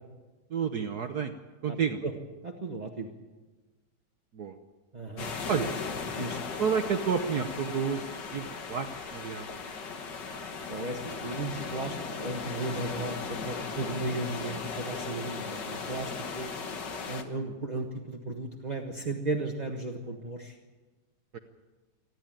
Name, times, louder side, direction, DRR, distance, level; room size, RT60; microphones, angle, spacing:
voice 1, 0.5-1.3 1.6-2.0 4.3-4.6 5.5-5.7 6.6-9.6 17.3-17.5 21.3-21.4, right 6 dB, 55° right, 6 dB, 1.4 m, -30 dB
voice 2, 2.4-3.1 4.9-5.3 6.2-6.4 10.7-16.5 17.1-20.6, right 2 dB, 25° right, 2 dB, 1.3 m, -35 dB
sound 1, 5.2-17.2, left 5 dB, 60° left, 2.1 m, -37 dB
28.5 x 11.0 x 9.0 m, 1.2 s
omnidirectional pair, 2.2 m